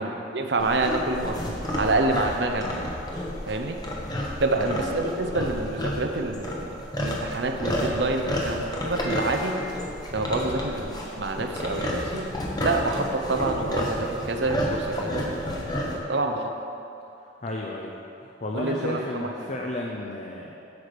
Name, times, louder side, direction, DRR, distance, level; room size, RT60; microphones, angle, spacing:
voice 1, 0.0-1.4 1.7-2.7 3.5-3.8 4.4-6.7 7.0-9.6 10.1-12.3 12.6-15.4 15.9-16.5 18.5-19.5, right 2 dB, 65° right, 4 dB, 0.8 m, -27 dB
sound 1, 0.6-16.0, left 1 dB, 20° left, 1.0 m, -31 dB
Wind chime, 9.0-10.4, left 6 dB, 10° right, 0.7 m, -43 dB
voice 2, 17.2-17.9 18.2-20.6, left 2 dB, 40° left, -1 dB, 0.6 m, -33 dB
10.0 x 4.8 x 6.7 m, 2.7 s
head